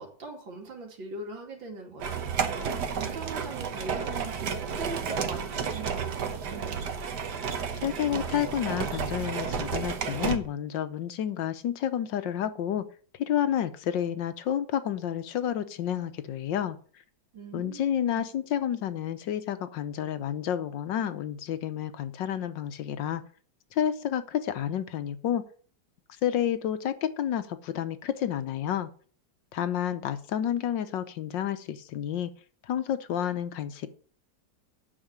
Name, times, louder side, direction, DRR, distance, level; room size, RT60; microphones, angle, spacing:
voice 1, 0.0-2.2 2.9-6.9 17.3-18.3, right 3 dB, 85° right, 2 dB, 3.4 m, -41 dB
sound 1, 2.0-10.4, right 6 dB, 65° right, 1.7 m, -32 dB
voice 2, 7.8-12.8 13.2-16.8 17.5-23.2 23.7-25.4 26.2-28.9 29.5-32.3 32.7-33.9, left 10 dB, 80° left, 12 dB, 1.6 m, -30 dB
8.9 x 6.5 x 8.6 m, 0.43 s
omnidirectional pair, 2.0 m